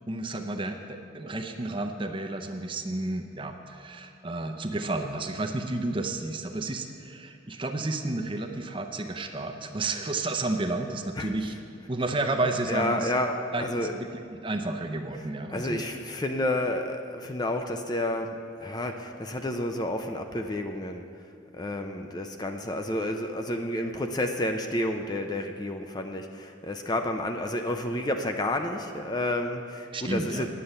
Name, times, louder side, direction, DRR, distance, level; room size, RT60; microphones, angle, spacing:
voice 1, 0.1-11.5 11.9-13.1 13.5-13.6 14.0-14.1 14.4-15.8 29.9-30.5, right 2 dB, 25° right, 5 dB, 0.6 m, -31 dB
voice 2, 12.7-13.9 15.5-21.0 21.5-30.5, left 1 dB, 20° left, 5 dB, 0.5 m, -30 dB
9.7 x 6.9 x 8.8 m, 2.4 s
head